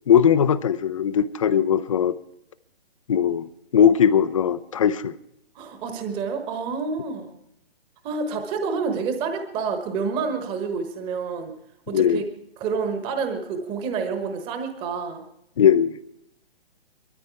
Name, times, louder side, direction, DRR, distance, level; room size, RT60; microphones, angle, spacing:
voice 1, 0.1-2.2 3.1-5.1 11.9-12.2 15.6-16.0, left 8 dB, 35° left, 16 dB, 0.6 m, -19 dB
voice 2, 5.5-7.3 8.0-11.5 11.9-12.2 12.6-15.2, right 5 dB, 15° right, 6 dB, 1.2 m, -28 dB
21.0 x 13.5 x 4.6 m, 0.81 s
figure-of-eight pair, 130°, 30 cm